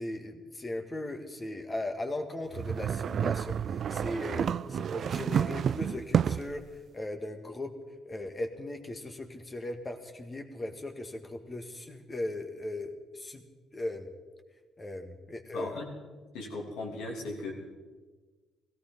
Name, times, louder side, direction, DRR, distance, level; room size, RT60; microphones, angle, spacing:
voice 1, 0.0-6.6 6.9-7.7 8.1-13.4 13.7-14.1 14.8-15.7, left 1 dB, 30° left, 5 dB, 2.0 m, -38 dB
sound 1, 2.5-6.6, right 8 dB, 55° right, 0.4 m, -30 dB
voice 2, 15.5-15.9 16.3-17.5, left 2 dB, 75° left, 0 dB, 3.1 m, -37 dB
17.0 x 15.0 x 5.4 m, 1.4 s
hypercardioid pair, 50°, 0 cm